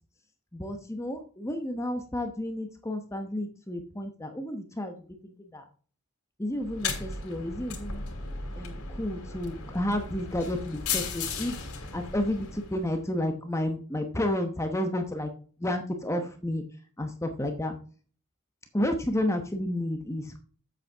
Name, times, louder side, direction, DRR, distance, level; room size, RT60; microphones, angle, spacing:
voice 1, 0.5-4.9 5.2-5.6 6.4-8.0 8.6-11.5 11.9-15.3 15.6-16.6 17.0-17.7 18.7-20.4, left 1 dB, 15° left, 5 dB, 1.0 m, -31 dB
sound 1, 6.6-13.0, left 5 dB, 80° left, 2.7 m, -36 dB
8.4 x 7.7 x 3.5 m, 0.40 s
head